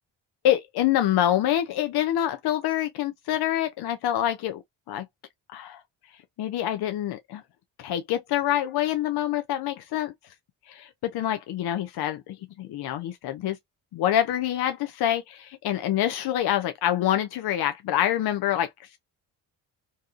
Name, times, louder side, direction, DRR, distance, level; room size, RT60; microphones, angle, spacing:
voice 1, 0.4-4.6 4.9-5.1 5.5-5.8 6.4-7.4 7.8-10.1 10.7-13.6 13.9-18.7, left 12 dB, 55° left, 0.6 m, -26 dB
2.6 x 2.4 x 2.4 m
supercardioid pair, 50°, 45 cm